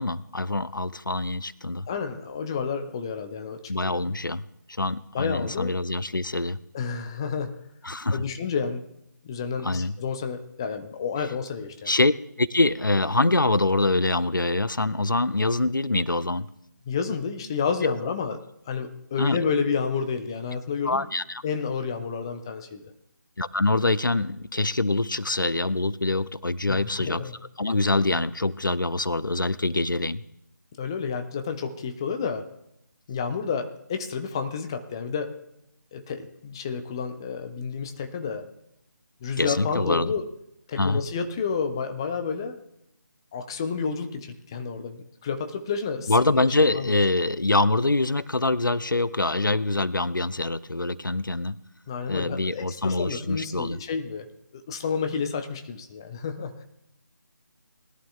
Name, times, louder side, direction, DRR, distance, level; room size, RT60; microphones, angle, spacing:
voice 1, 0.0-1.9 3.7-4.4 4.8-6.6 7.8-8.2 9.6-9.9 11.9-12.1 12.4-16.5 17.8-18.1 19.2-19.4 20.8-21.4 23.4-27.2 27.6-30.2 39.4-40.1 40.8-41.0 46.1-51.6 52.1-53.8, left 2 dB, 85° left, 17 dB, 0.5 m, -24 dB
voice 2, 1.9-4.1 5.1-5.7 6.7-7.6 8.1-8.8 9.2-11.9 16.9-18.4 18.7-21.1 21.4-22.9 26.7-27.3 30.8-32.5 33.1-35.3 35.9-38.5 39.2-40.3 40.7-42.6 43.3-46.5 46.7-46.9 51.9-54.3 54.5-56.6, left 5 dB, 15° left, 7 dB, 0.4 m, -30 dB
20.0 x 11.0 x 2.4 m, 0.79 s
figure-of-eight pair, 155°, 11 cm